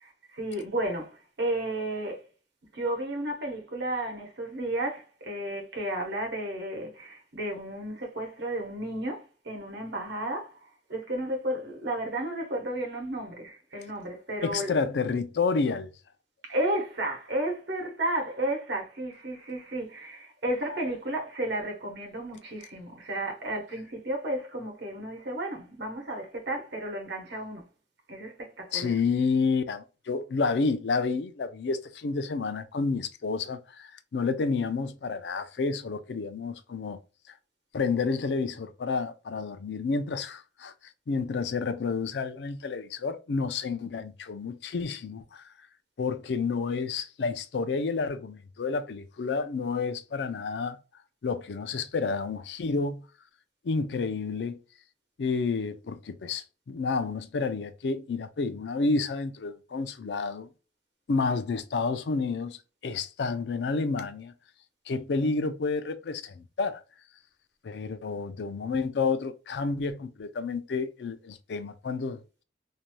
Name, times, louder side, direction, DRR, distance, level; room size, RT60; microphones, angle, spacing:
voice 1, 0.0-2.2 2.7-10.5 10.9-14.7 16.4-27.7 28.1-28.9, right 1 dB, 85° right, 0.9 m, -33 dB
voice 2, 14.4-15.9 28.7-37.0 37.3-37.4 37.7-40.7 41.1-45.5 46.0-50.8 51.2-53.1 53.6-54.6 55.2-60.5 61.1-62.6 62.8-64.3 64.9-66.8 67.6-72.4, left 4 dB, 85° left, 0.4 m, -30 dB
2.6 x 2.2 x 3.0 m
head